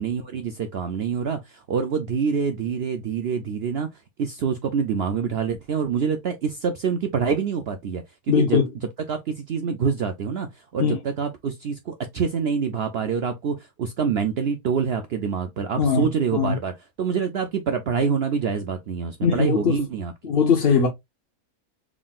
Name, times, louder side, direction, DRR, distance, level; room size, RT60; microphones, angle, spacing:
voice 1, 0.0-8.6 9.1-16.7 17.0-20.1, right 6 dB, 70° right, 0.6 m, -26 dB
voice 2, 8.3-8.7 10.8-11.0 15.8-16.5 19.2-19.7 20.2-20.9, left 6 dB, 50° left, 0.9 m, -20 dB
3.7 x 3.6 x 2.3 m
omnidirectional pair, 1.6 m